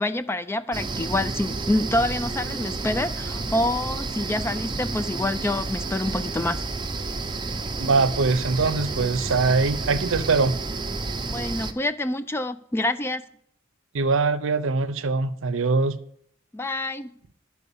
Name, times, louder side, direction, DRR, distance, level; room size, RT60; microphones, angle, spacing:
voice 1, 0.0-6.6 11.3-13.2 16.5-17.1, left 1 dB, 10° left, 0.3 m, -27 dB
sound 1, 0.7-11.7, right 3 dB, 20° right, 0.7 m, -30 dB
voice 2, 7.8-10.6 13.9-16.0, right 4 dB, 65° right, 0.7 m, -22 dB
11.0 x 4.6 x 7.0 m
head